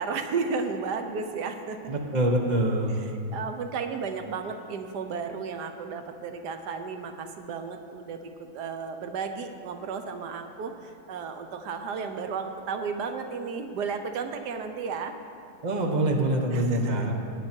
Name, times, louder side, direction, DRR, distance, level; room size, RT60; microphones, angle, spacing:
voice 1, 0.0-1.9 3.0-15.2 16.5-17.1, right 5 dB, 90° right, 7 dB, 1.5 m, -33 dB
voice 2, 1.9-3.0 15.6-17.3, right 1 dB, 30° right, 2 dB, 1.2 m, -25 dB
17.0 x 9.0 x 4.5 m, 2.8 s
omnidirectional pair, 1.7 m